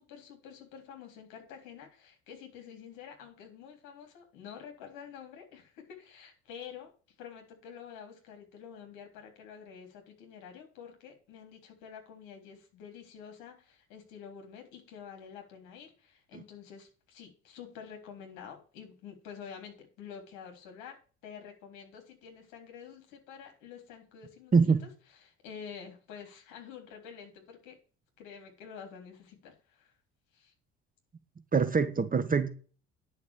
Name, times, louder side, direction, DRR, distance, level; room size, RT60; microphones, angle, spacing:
voice 1, 0.0-24.5 24.8-24.9 25.2-27.8 28.2-29.9 30.3-30.5, left 7 dB, 65° left, 3.7 m, -48 dB
voice 2, 31.5-32.5, right 5 dB, 25° right, 1.5 m, -24 dB
10.5 x 6.5 x 6.2 m
hypercardioid pair, 60°, 33 cm